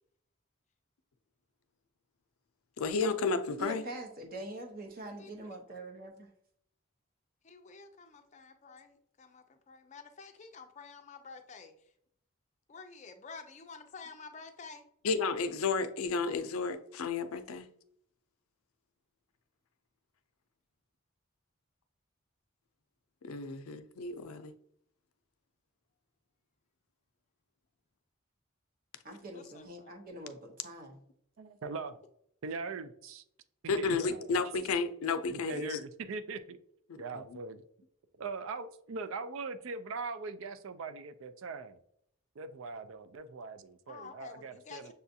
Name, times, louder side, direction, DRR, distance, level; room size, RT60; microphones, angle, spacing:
voice 1, 2.8-3.8 15.0-17.7 23.2-24.5 33.7-35.8 36.9-37.0, left 4 dB, 90° left, 0.5 m, -32 dB
voice 2, 3.6-6.3 29.0-31.0, right 1 dB, 45° right, 0.8 m, -44 dB
voice 3, 5.2-5.6 7.4-11.7 12.7-14.9 29.3-29.9 43.9-44.9, left 5 dB, 35° left, 0.4 m, -50 dB
voice 4, 31.4-32.0 32.4-33.2 33.6-34.3 35.3-36.6 37.0-37.6 38.2-41.8 42.4-44.9, right 4 dB, 70° right, 0.4 m, -41 dB
6.8 x 2.4 x 2.7 m
head